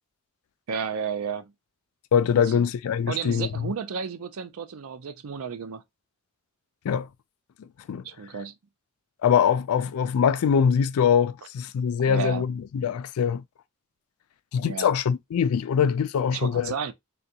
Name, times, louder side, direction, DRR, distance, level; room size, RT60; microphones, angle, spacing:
voice 1, 0.7-1.5 2.4-2.7 3.1-5.8 8.0-8.5 12.1-12.4 14.6-14.9 16.3-16.9, right 6 dB, 85° right, 0.5 m, -32 dB
voice 2, 2.1-3.7 6.8-7.1 7.9-8.0 9.2-13.4 14.5-16.7, left 7 dB, 80° left, 0.3 m, -23 dB
3.7 x 2.3 x 2.7 m
head